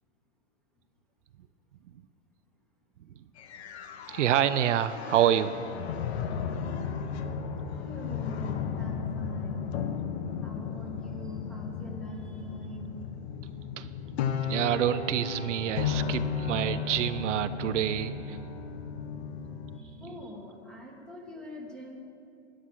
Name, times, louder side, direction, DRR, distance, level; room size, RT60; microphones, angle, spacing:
sound 1, 3.4-19.8, left 6 dB, 60° left, 1.0 m, -34 dB
voice 1, 4.1-5.6 7.3-7.4 13.8-13.9 14.5-18.4, right 11 dB, 80° right, 12 dB, 0.6 m, -27 dB
voice 2, 7.7-9.7 10.4-13.0 19.7-22.0, equal, ahead, 0 dB, 1.5 m, -44 dB
12.5 x 10.0 x 6.3 m, 2.6 s
hypercardioid pair, 135°, 36 cm